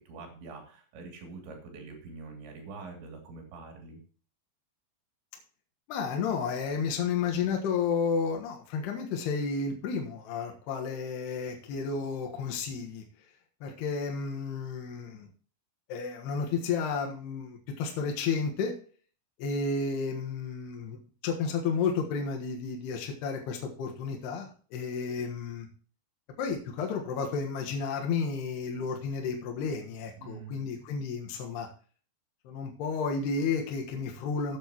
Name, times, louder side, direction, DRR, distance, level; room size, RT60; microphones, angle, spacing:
voice 1, 0.0-4.0 30.2-30.6, right 4 dB, 80° right, 2 dB, 5.2 m, -45 dB
voice 2, 5.9-13.0 13.6-15.3 15.9-18.7 19.4-25.7 26.4-31.7 32.4-34.6, left 5 dB, 70° left, 2 dB, 3.3 m, -32 dB
13.5 x 8.9 x 3.0 m, 0.42 s
omnidirectional pair, 5.1 m